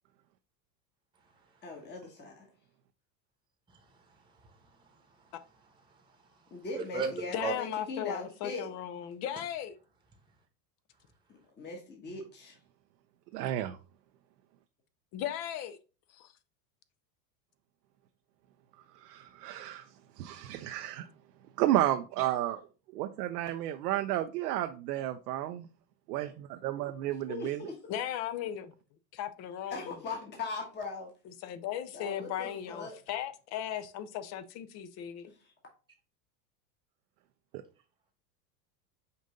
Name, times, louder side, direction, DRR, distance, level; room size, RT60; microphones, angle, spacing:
voice 1, 1.6-2.5 6.5-8.7 11.3-12.6 27.1-27.8 29.7-31.1 31.9-33.0 35.3-35.5, left 3 dB, 20° left, 1.1 m, -40 dB
voice 2, 3.7-5.3 5.9-6.3 6.7-7.5, right 5 dB, 10° right, 0.9 m, -39 dB
voice 3, 7.3-9.7 15.1-15.8 16.1-16.3 27.9-28.7 29.1-30.0 31.4-35.3, left 10 dB, 35° left, 0.4 m, -37 dB
voice 4, 13.3-13.8 19.0-19.9 20.2-21.0 21.6-22.6 22.9-25.7 26.1-27.7 37.5-37.6, right 13 dB, 75° right, 0.6 m, -32 dB
5.3 x 2.6 x 3.8 m
hypercardioid pair, 100°, 48 cm